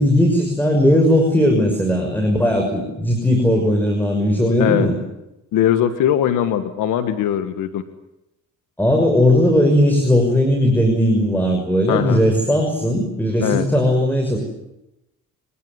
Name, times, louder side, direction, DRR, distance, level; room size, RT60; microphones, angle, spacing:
voice 1, 0.0-4.9 8.8-14.4, equal, 5° left, 3 dB, 6.0 m, -17 dB
voice 2, 4.6-4.9 5.5-7.8 11.9-12.2 13.4-13.7, left 10 dB, 90° left, 9 dB, 1.7 m, -20 dB
27.0 x 20.0 x 8.0 m, 0.91 s
cardioid pair, 90°, 30 cm